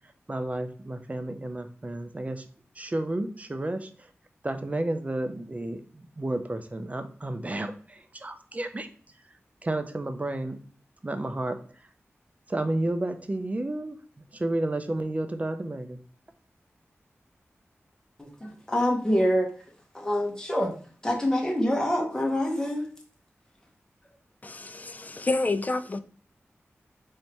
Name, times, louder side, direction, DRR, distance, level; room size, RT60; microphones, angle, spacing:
voice 1, 0.3-2.5 2.8-4.1 4.4-8.9 9.6-10.6 11.0-11.6 12.5-14.0 14.3-16.0, right 1 dB, 30° right, 8 dB, 0.5 m, -31 dB
voice 2, 18.2-19.5 19.9-20.7 21.0-22.8, equal, 15° left, 0 dB, 1.1 m, -26 dB
voice 3, 24.4-26.0, left 2 dB, 35° left, 11 dB, 0.4 m, -29 dB
3.3 x 2.7 x 4.3 m, 0.42 s
wide cardioid pair, 60°, 5 cm